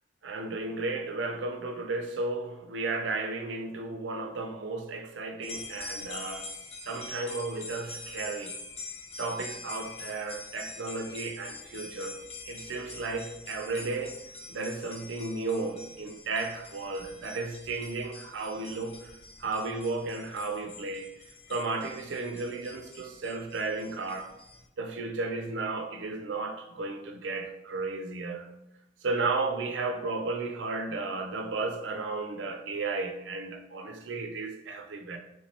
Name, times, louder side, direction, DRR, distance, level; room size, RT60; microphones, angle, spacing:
voice 1, 0.2-6.4 6.9-8.6 9.2-12.2 12.5-14.2 14.5-19.1 19.4-21.1 21.5-24.3 24.8-28.5 29.0-35.2, right 3 dB, 75° right, 0.5 m, -34 dB
sound 1, 5.4-24.7, left 3 dB, 35° left, 0.5 m, -45 dB
3.2 x 3.1 x 2.9 m
head